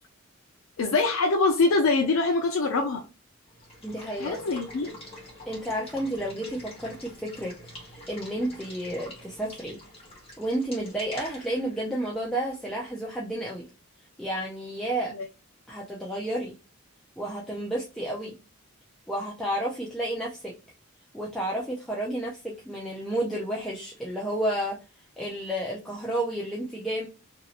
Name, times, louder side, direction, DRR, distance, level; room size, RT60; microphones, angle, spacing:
voice 1, 0.8-3.0 4.2-4.9 15.1-15.3, left 3 dB, 75° left, 2 dB, 0.4 m, -24 dB
Water / Water tap faucet / Liquid, 3.5-13.1, left 1 dB, 25° left, 1.3 m, -46 dB
voice 2, 3.8-4.4 5.5-7.5 8.1-9.8 10.4-13.7 14.2-15.1 15.7-16.5 17.2-18.4 19.1-20.5 21.1-24.8 25.2-27.1, right 1 dB, ahead, -5 dB, 0.5 m, -31 dB
3.0 x 2.7 x 2.8 m, 0.30 s
head